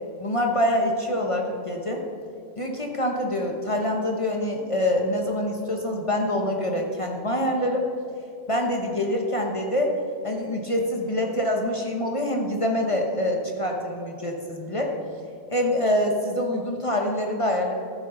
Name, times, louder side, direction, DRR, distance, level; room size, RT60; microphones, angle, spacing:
voice 1, 0.2-2.0 2.6-7.8 8.5-9.9 10.2-14.9 15.5-17.7, left 1 dB, 30° left, 1 dB, 1.0 m, -25 dB
12.0 x 9.5 x 3.9 m, 2.6 s
omnidirectional pair, 1.1 m